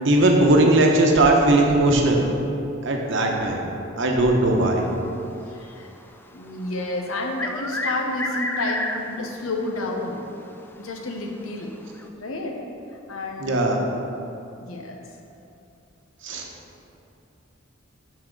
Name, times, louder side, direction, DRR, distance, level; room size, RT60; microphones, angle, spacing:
voice 1, 0.0-2.2 2.8-3.6 4.0-4.8 13.4-13.8 16.2-16.5, right 2 dB, 60° right, 1 dB, 0.9 m, -18 dB
voice 2, 5.5-5.9 6.3-10.2 10.8-11.7 12.1-12.6 13.1-13.6 14.6-15.0, left 2 dB, 90° left, 1 dB, 0.9 m, -30 dB
sound 1, 7.1-9.3 9.6-9.7 10.7-10.8 11.9-12.0, left 2 dB, 10° left, 0.3 m, -29 dB
6.1 x 4.3 x 6.5 m, 2.7 s
head